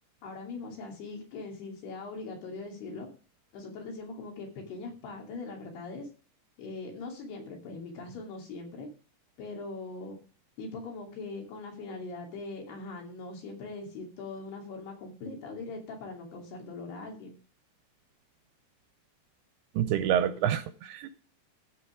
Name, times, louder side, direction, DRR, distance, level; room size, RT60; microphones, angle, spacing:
voice 1, 0.2-3.1 3.5-6.1 6.6-8.9 9.4-10.2 10.6-17.4, left 3 dB, 70° left, 1 dB, 4.7 m, -41 dB
voice 2, 19.8-21.1, right 10 dB, 80° right, 11 dB, 2.5 m, -27 dB
14.5 x 5.9 x 5.0 m, 0.38 s
omnidirectional pair, 5.0 m